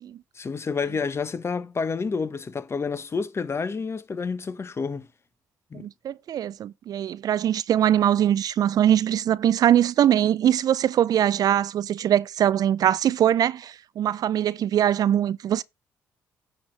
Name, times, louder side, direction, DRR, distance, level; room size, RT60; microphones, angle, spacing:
voice 1, 0.3-5.1 5.7-5.9, left 5 dB, 35° left, 1.2 m, -29 dB
voice 2, 5.7-15.6, right 10 dB, 55° right, 0.4 m, -22 dB
9.5 x 4.4 x 4.7 m
hypercardioid pair, 55°, 8 cm